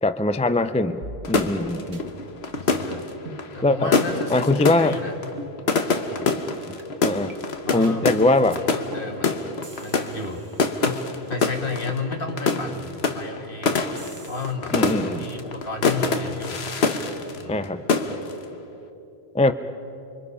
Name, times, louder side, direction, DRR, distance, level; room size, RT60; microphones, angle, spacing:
voice 1, 0.0-1.0 1.3-2.0 3.6-3.9 4.3-4.9 7.0-7.3 7.7-8.6 14.7-15.3 17.5-17.8 19.3-19.5, left 2 dB, 10° left, 11 dB, 0.4 m, -21 dB
sound 1, 1.0-1.6 1.9-2.0 2.5-2.9 3.3-3.5 4.0-4.1 4.7-5.0 5.4-5.5 6.1-6.2 6.8-6.9 7.3-7.4 7.8-8.0 8.5-8.6 8.9-9.2 9.6-11.5 14.0-14.5 14.9-15.0, right 2 dB, 85° right, 1.5 m, -42 dB
sound 2, 1.2-17.6 17.9-18.4, left 4 dB, 85° left, 1.4 m, -26 dB
voice 2, 1.8-2.4 2.6-3.1 3.5-5.2 6.1-6.3 7.7-9.4 9.8-10.5 10.8-13.9 14.3-14.8 15.1-16.7 17.3-17.6, left 3 dB, 60° left, 4 dB, 1.9 m, -33 dB
29.5 x 24.0 x 5.6 m, 2.8 s
omnidirectional pair, 1.1 m